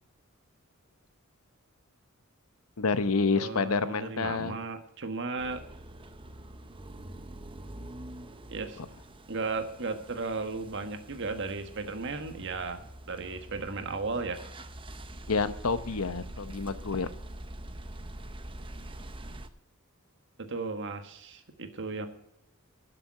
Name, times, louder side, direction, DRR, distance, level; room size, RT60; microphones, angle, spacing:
voice 1, 2.8-4.6 8.8-8.9 15.3-17.1, left 4 dB, 85° left, 12 dB, 0.8 m, -28 dB
voice 2, 3.3-5.6 8.5-8.8 9.3-12.8 13.1-14.4 20.4-22.1, right 3 dB, 60° right, 7 dB, 1.4 m, -35 dB
sound 1, 5.4-19.5, right 1 dB, 25° right, 0.8 m, -45 dB
12.0 x 6.9 x 8.5 m, 0.79 s
head